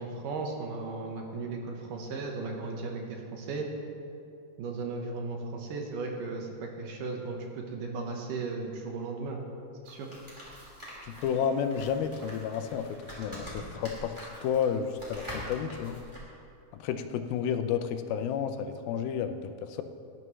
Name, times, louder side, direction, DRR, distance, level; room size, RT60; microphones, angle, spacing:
voice 1, 0.0-3.7 4.6-9.4 9.9-10.1, right 3 dB, 70° right, 1 dB, 2.5 m, -36 dB
sound 1, 9.8-16.2, equal, 10° right, 2.9 m, -44 dB
voice 2, 11.0-12.9 13.2-16.0 16.8-19.8, left 7 dB, 80° left, 8 dB, 2.4 m, -31 dB
18.0 x 11.0 x 3.1 m, 2.6 s
omnidirectional pair, 4.3 m